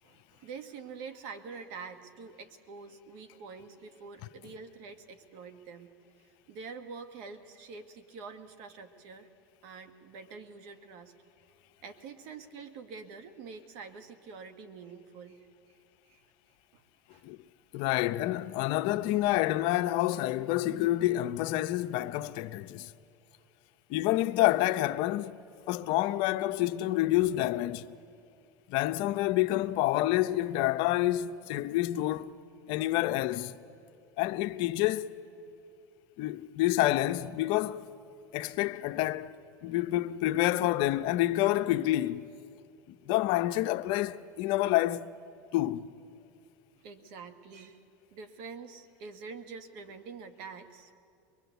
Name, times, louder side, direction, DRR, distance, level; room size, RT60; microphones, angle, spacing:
voice 1, 0.0-5.9 6.2-9.3 9.6-11.1 11.8-15.5 16.1-16.2 16.7-16.8 17.1-17.2 46.8-47.8 48.1-50.9, right 5 dB, 65° right, 1.7 m, -46 dB
voice 2, 17.7-22.9 23.9-25.4 25.7-27.9 28.7-32.3 32.7-33.6 34.2-35.2 36.2-37.9 38.3-39.3 39.6-42.3 42.9-45.1 45.5-45.9, left 15 dB, 60° left, 0.7 m, -28 dB
23.0 x 22.0 x 8.1 m
supercardioid pair, 120°, 9 cm